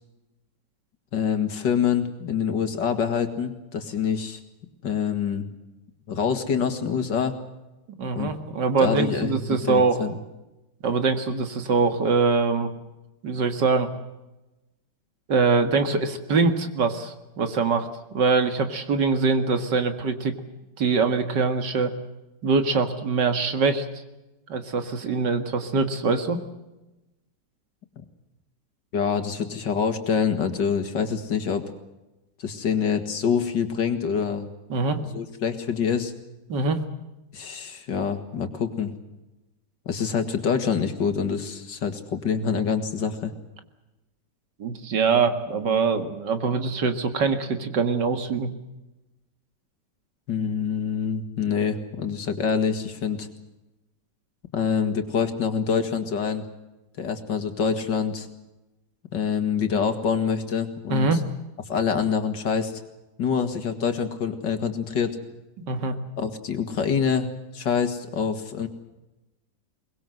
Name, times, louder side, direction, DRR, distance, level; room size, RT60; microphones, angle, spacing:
voice 1, 1.1-4.4 4.8-5.4 6.1-7.4 8.2-8.3 8.8-9.4 9.7-10.2 28.9-31.6 32.4-34.5 35.0-36.1 37.3-38.9 39.9-43.3 50.3-53.3 54.5-56.4 57.0-58.3 59.1-61.1 61.7-62.7 63.2-65.2 66.2-67.3 67.5-68.7, left 6 dB, 85° left, 7 dB, 2.6 m, -26 dB
voice 2, 8.0-10.1 10.8-12.7 13.2-13.9 15.3-17.9 18.1-20.4 20.8-21.9 22.4-23.8 24.5-26.4 34.7-35.0 36.5-36.8 44.6-48.5 60.9-61.2 65.6-66.0, right 4 dB, 75° right, 8 dB, 2.4 m, -23 dB
23.0 x 20.5 x 7.7 m, 1.0 s
omnidirectional pair, 1.9 m